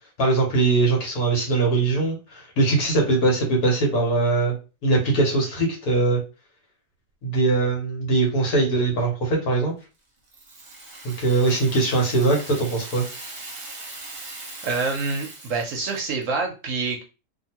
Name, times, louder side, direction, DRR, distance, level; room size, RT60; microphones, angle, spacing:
voice 1, 0.2-4.6 4.8-6.2 7.2-9.7 11.0-13.1, right 3 dB, 70° left, -1 dB, 1.5 m, -21 dB
Rattle (instrument), 10.3-16.3, right 2 dB, 35° right, 0.7 m, -40 dB
voice 2, 14.6-17.0, right 4 dB, 65° right, 3 dB, 0.8 m, -26 dB
2.8 x 2.5 x 2.8 m, 0.32 s
omnidirectional pair, 1.6 m